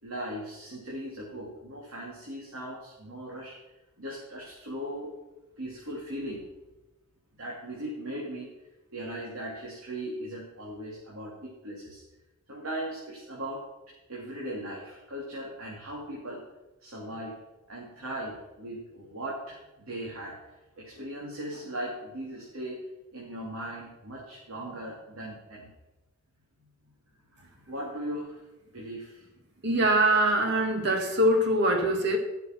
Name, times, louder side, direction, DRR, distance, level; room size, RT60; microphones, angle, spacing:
voice 1, 0.0-3.6 4.0-5.1 5.6-6.5 7.4-8.5 8.9-12.0 12.5-13.6 14.1-16.4 16.8-17.4 17.7-20.4 20.8-22.8 23.1-25.7 26.6-26.7 27.6-28.4 28.7-29.3, right 1 dB, 80° right, -4 dB, 3.1 m, -38 dB
voice 2, 29.6-32.2, right 1 dB, 50° right, 3 dB, 1.8 m, -23 dB
15.5 x 6.9 x 6.1 m, 1.0 s
head